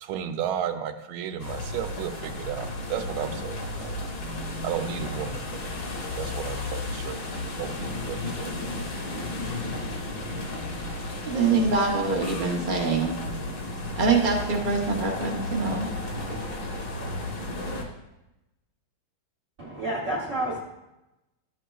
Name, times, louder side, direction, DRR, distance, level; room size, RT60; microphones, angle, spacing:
voice 1, 0.0-3.9 4.6-5.4 6.1-7.3 7.6-8.5, right 9 dB, 90° right, 1.5 m, -33 dB
sound 1, 1.4-17.8, left 2 dB, 55° left, 1.5 m, -33 dB
voice 2, 11.2-13.2 14.0-16.4, right 4 dB, 70° right, 0.4 m, -25 dB
voice 3, 19.6-20.6, right 1 dB, 55° right, 0.9 m, -29 dB
11.0 x 6.4 x 2.3 m
omnidirectional pair, 2.3 m